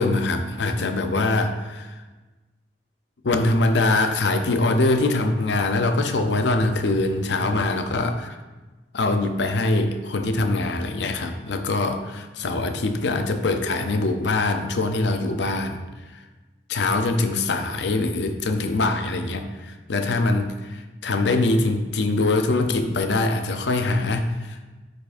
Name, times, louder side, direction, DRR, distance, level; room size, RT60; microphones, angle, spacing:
voice 1, 0.0-1.9 3.2-8.4 8.9-15.8 16.7-24.6, left 2 dB, 70° left, 6 dB, 0.6 m, -23 dB
9.1 x 4.7 x 2.6 m, 1.2 s
head